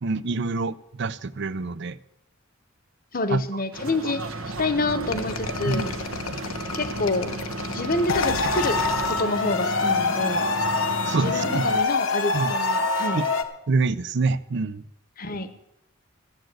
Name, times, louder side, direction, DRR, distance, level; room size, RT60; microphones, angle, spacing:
voice 1, 0.0-2.0 3.3-3.4 4.0-4.1 5.7-5.9 11.0-11.7 12.3-12.5 13.1-13.2 13.7-14.8, right 3 dB, 60° right, 0.5 m, -26 dB
voice 2, 3.1-4.3 4.6-5.9 6.7-7.3 7.7-8.8 9.1-10.4 11.2-13.2 15.2-15.5, left 2 dB, 45° left, 1.0 m, -27 dB
sound 1, 3.7-11.8, right 2 dB, 85° right, 1.4 m, -34 dB
sound 2, 5.1-9.9, left 4 dB, 90° left, 1.1 m, -33 dB
sound 3, 8.1-13.4, left 3 dB, 70° left, 1.1 m, -25 dB
13.5 x 8.0 x 7.8 m
head